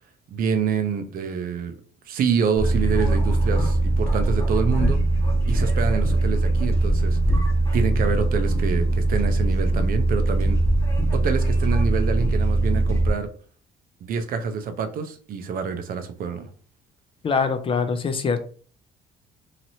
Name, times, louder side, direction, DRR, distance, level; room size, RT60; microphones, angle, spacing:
voice 1, 0.3-1.7 2.1-5.0 5.5-7.2 7.7-10.6 11.1-13.3 14.0-16.5, right 6 dB, 60° right, 8 dB, 0.6 m, -26 dB
sound 1, 2.6-13.1, right 2 dB, 15° left, 1.1 m, -21 dB
voice 2, 17.2-18.4, left 5 dB, 30° left, 9 dB, 0.4 m, -23 dB
2.9 x 2.9 x 2.7 m, 0.43 s
cardioid pair, 110°, 17 cm